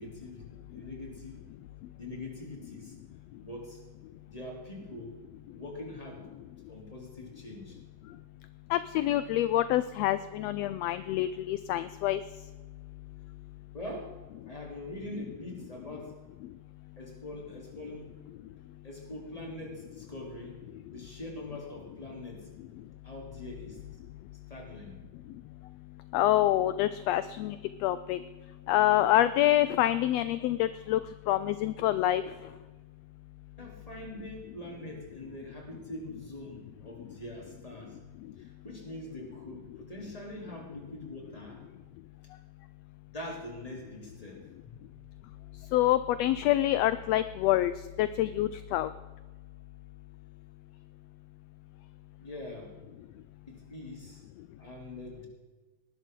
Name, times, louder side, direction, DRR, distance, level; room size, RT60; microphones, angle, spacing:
voice 1, 0.0-1.4 1.9-3.0 3.4-3.8 4.3-5.1 5.5-6.3 6.7-7.8 13.7-14.2 14.5-16.1 17.0-18.1 18.8-20.6 20.9-22.5 23.0-23.8 24.5-25.0 33.6-38.0 38.4-41.6 43.1-44.7 52.2-52.7 53.5-54.2 54.6-55.3, left 1 dB, 10° left, -1 dB, 3.5 m, -43 dB
voice 2, 8.7-12.2 26.1-27.6 27.8-28.2 28.7-31.0 31.3-32.2 45.7-47.7 48.0-48.9, left 14 dB, 80° left, 13 dB, 1.5 m, -26 dB
19.0 x 12.0 x 3.9 m, 1.3 s
omnidirectional pair, 3.4 m